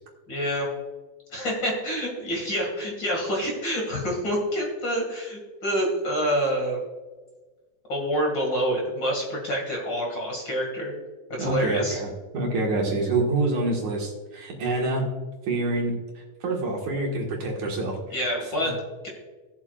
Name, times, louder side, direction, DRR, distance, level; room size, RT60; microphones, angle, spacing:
voice 1, 0.3-0.7 1.3-6.8 7.9-10.9 11.4-12.0 18.1-18.7, equal, 40° left, -1 dB, 2.4 m, -27 dB
voice 2, 11.4-15.0 15.5-15.9 16.4-18.0 18.6-18.7, right 2 dB, 65° right, -1 dB, 2.9 m, -26 dB
16.5 x 7.3 x 2.4 m, 1.3 s
omnidirectional pair, 3.6 m